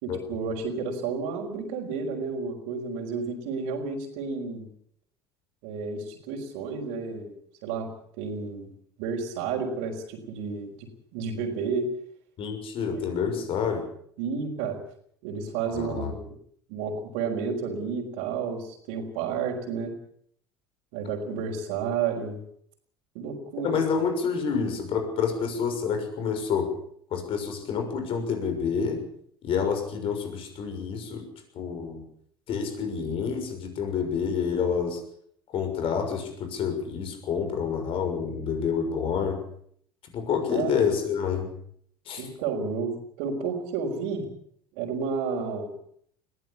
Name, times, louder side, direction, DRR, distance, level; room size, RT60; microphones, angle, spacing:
voice 1, 0.0-4.7 5.6-7.3 7.6-7.9 8.2-8.7 9.0-11.9 13.2-13.4 14.2-14.8 15.2-16.3 16.7-19.9 20.9-22.4 23.1-23.8 40.5-40.8 42.2-44.3 44.7-45.7, right 5 dB, 70° right, -5 dB, 4.4 m, -31 dB
voice 2, 12.4-13.9 15.7-16.1 23.6-26.7 27.1-29.0 29.4-31.3 31.5-32.0 32.5-35.0 35.5-39.4 40.1-41.5 42.1-42.3, left 6 dB, 50° left, 6 dB, 6.4 m, -28 dB
21.0 x 16.0 x 8.6 m, 0.65 s
hypercardioid pair, 70°, 12 cm